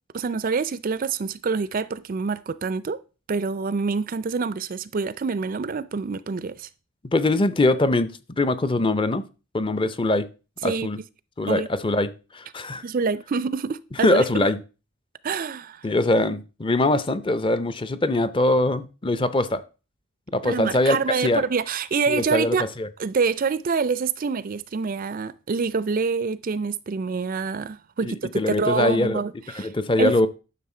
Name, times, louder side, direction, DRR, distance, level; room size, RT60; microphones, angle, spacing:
voice 1, 0.1-3.0 3.3-6.7 10.6-10.9 11.5-11.7 12.8-14.2 15.2-15.9 20.4-22.7 23.0-29.7 30.0-30.1, right 5 dB, 40° right, 0.4 m, -26 dB
voice 2, 7.1-9.3 9.5-10.3 10.6-11.0 11.4-12.8 14.0-14.6 15.8-19.6 20.3-21.4 22.1-22.9 28.1-29.2 29.5-30.3, left 2 dB, 20° left, 0.5 m, -22 dB
11.0 x 6.3 x 4.3 m
head